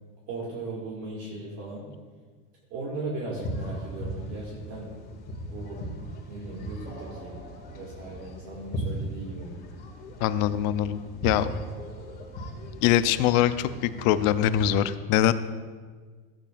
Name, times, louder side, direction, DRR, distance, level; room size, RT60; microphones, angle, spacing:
voice 1, 0.3-1.9 2.7-4.9 5.4-5.8 6.2-7.4 7.7-9.6, right 2 dB, 50° right, -4 dB, 2.1 m, -37 dB
sound 1, 3.3-14.8, right 1 dB, 30° left, 2.0 m, -38 dB
sound 2, 5.9-9.2 11.3-13.0, right 1 dB, 35° right, 2.7 m, -48 dB
voice 2, 10.2-11.5 12.8-15.3, left 11 dB, 60° left, 12 dB, 0.6 m, -23 dB
14.5 x 8.7 x 2.5 m, 1.5 s
supercardioid pair, 130°, 29 cm